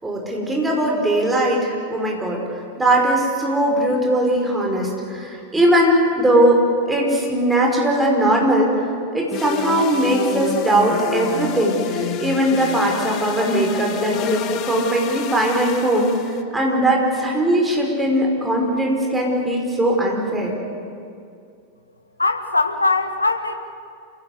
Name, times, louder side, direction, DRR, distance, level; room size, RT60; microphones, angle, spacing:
voice 1, 0.0-2.4 2.8-8.8 9.1-20.6, right 1 dB, 10° right, -1 dB, 5.5 m, -19 dB
sound 1, 9.3-16.4, left 9 dB, 40° left, 1.3 m, -29 dB
voice 2, 22.2-23.6, left 3 dB, 80° left, 7 dB, 1.6 m, -20 dB
28.5 x 17.0 x 8.2 m, 2.4 s
figure-of-eight pair, 90°, 0 cm